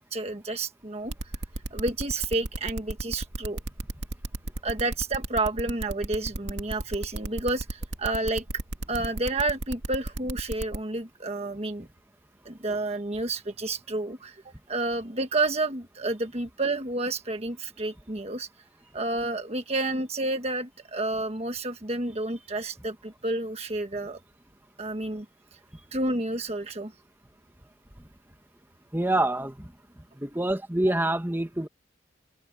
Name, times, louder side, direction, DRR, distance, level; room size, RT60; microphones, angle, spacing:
voice 1, 0.1-1.1 1.7-3.6 4.6-8.4 8.9-11.9 12.4-14.4 14.7-18.5 18.9-24.2 24.8-25.2 25.9-26.9, right 2 dB, 35° right, 1.5 m, -30 dB
sound 1, 1.1-10.8, right 1 dB, 85° right, 2.2 m, -33 dB
voice 2, 28.9-29.7 30.2-31.7, right 1 dB, 10° right, 1.7 m, -26 dB
open air
head